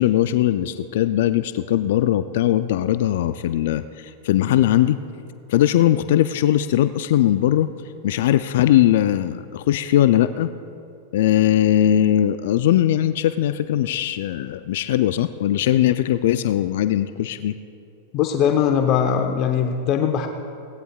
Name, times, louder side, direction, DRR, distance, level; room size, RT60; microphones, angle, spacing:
voice 1, 0.0-5.0 5.5-7.7 8.0-10.5 11.1-17.6, left 12 dB, 65° left, 12 dB, 0.4 m, -20 dB
voice 2, 18.1-20.3, left 8 dB, 45° left, 5 dB, 0.8 m, -20 dB
21.0 x 18.0 x 2.4 m, 2.6 s
hypercardioid pair, 100°, 0 cm